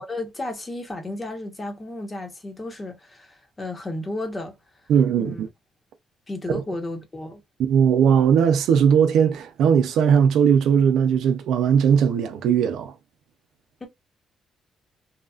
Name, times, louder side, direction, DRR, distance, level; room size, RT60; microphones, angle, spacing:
voice 1, 0.0-4.6 5.2-5.5 6.3-7.4 13.8-13.9, left 2 dB, 25° left, 1.1 m, -33 dB
voice 2, 4.9-5.5 6.5-6.6 7.6-12.9, right 7 dB, 80° right, 0.6 m, -19 dB
2.9 x 2.4 x 2.4 m
cardioid pair, 90°, 0 cm